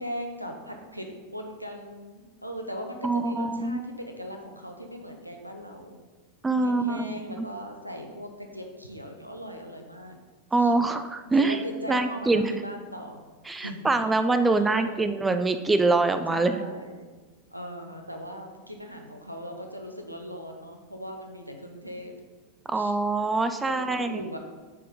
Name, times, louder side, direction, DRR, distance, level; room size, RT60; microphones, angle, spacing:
voice 1, 0.0-6.0 6.5-10.2 10.6-10.7 11.3-13.2 13.5-14.1 14.4-15.1 16.3-17.1 17.5-22.1 22.7-23.0 23.7-24.4, equal, 90° right, 4 dB, 0.9 m, -39 dB
voice 2, 3.0-3.8 6.4-7.5 10.5-11.6 11.9-12.5 13.5-16.6 22.7-24.2, right 3 dB, 10° right, 9 dB, 0.4 m, -24 dB
8.9 x 4.4 x 3.7 m, 1.3 s
figure-of-eight pair, 90°, 0 cm